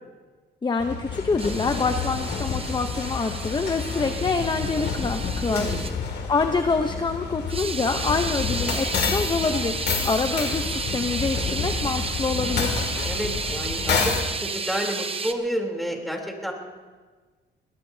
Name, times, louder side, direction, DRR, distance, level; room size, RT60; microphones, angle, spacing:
voice 1, 0.6-5.7 6.1-9.8 10.0-12.8, left 4 dB, 25° left, 7 dB, 0.8 m, -26 dB
sound 1, 0.8-14.2, left 5 dB, 60° left, 2.4 m, -29 dB
sound 2, 1.4-5.9 7.5-15.3, right 4 dB, 30° right, 1.0 m, -32 dB
voice 2, 5.5-6.0 13.0-14.1 14.4-16.5, equal, ahead, 1 dB, 3.4 m, -30 dB
21.0 x 19.0 x 2.8 m, 1.4 s
cardioid pair, 90°, 20 cm